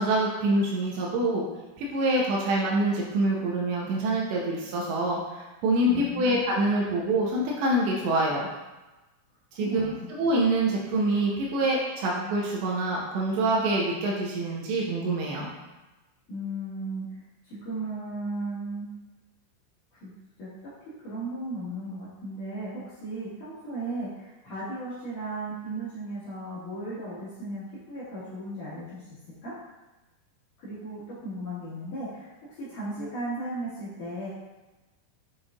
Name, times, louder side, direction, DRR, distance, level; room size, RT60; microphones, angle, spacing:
voice 1, 0.0-1.5 1.8-8.5 9.5-15.5, right 1 dB, 80° right, -3 dB, 2.9 m, -26 dB
voice 2, 5.9-6.4 9.5-10.1 16.3-18.9 19.9-20.1 20.4-20.5 21.0-29.1 29.4-29.5 30.6-34.3, right 1 dB, 55° left, -10 dB, 2.7 m, -36 dB
7.9 x 6.1 x 2.5 m, 1.1 s
omnidirectional pair, 5.5 m